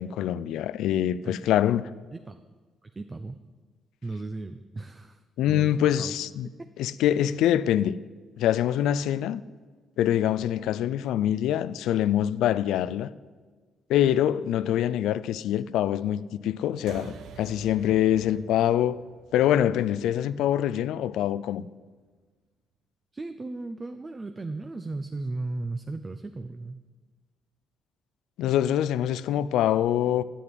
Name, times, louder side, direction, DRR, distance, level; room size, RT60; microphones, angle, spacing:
voice 1, 0.0-1.9 5.4-6.5 6.8-8.0 8.4-9.4 10.0-13.1 13.9-19.0 19.3-21.7 28.4-30.2, left 11 dB, 85° left, 0.4 m, -24 dB
voice 2, 2.1-2.4 2.8-3.4 4.0-5.2 5.5-5.7 6.0-6.1 6.4-6.5 23.1-26.8, right 2 dB, 25° right, 0.6 m, -36 dB
metal-gate-slam, 16.9-21.7, right 6 dB, 75° right, 0.9 m, -48 dB
10.0 x 7.7 x 9.0 m
cardioid pair, 90°, 0 cm